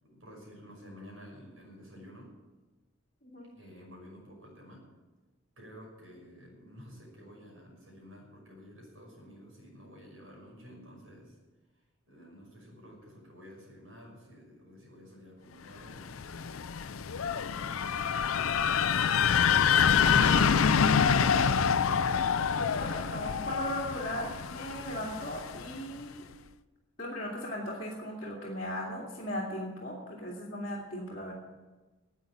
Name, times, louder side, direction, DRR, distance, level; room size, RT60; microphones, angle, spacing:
voice 1, 0.0-2.3 3.5-4.9 5.6-11.4 12.0-16.2 17.6-18.6, equal, 75° right, -2 dB, 6.0 m, -51 dB
sound 1, 15.9-25.7, left 7 dB, 85° left, 0.5 m, -26 dB
voice 2, 22.5-26.2 27.0-31.3, equal, 40° left, -7 dB, 2.5 m, -38 dB
10.5 x 8.7 x 9.8 m, 1.2 s
head